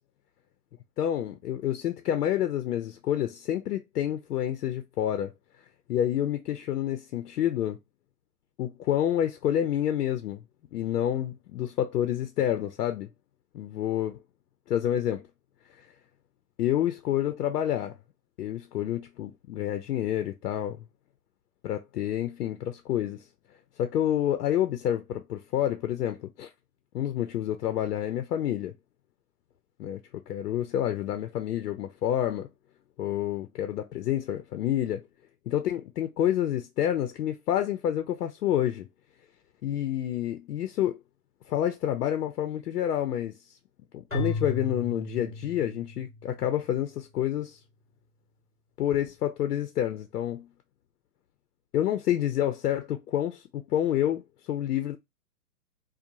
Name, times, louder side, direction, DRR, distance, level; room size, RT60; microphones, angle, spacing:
voice 1, 1.0-5.3 5.9-7.8 8.6-10.4 10.7-13.1 13.5-14.2 14.7-15.2 15.8-15.9 16.6-17.9 18.4-20.8 21.6-23.2 23.8-26.5 26.9-28.7 29.8-30.0 30.3-32.5 33.0-35.0 35.5-38.9 39.6-41.0 41.5-43.4 43.9-47.6 48.8-50.5 51.7-54.2 54.5-55.0, left 11 dB, 75° left, 0.6 m, -28 dB
Keyboard (musical), 44.1-46.4, left 2 dB, ahead, 0.5 m, -34 dB
2.5 x 2.1 x 2.9 m
hypercardioid pair, 165°, 47 cm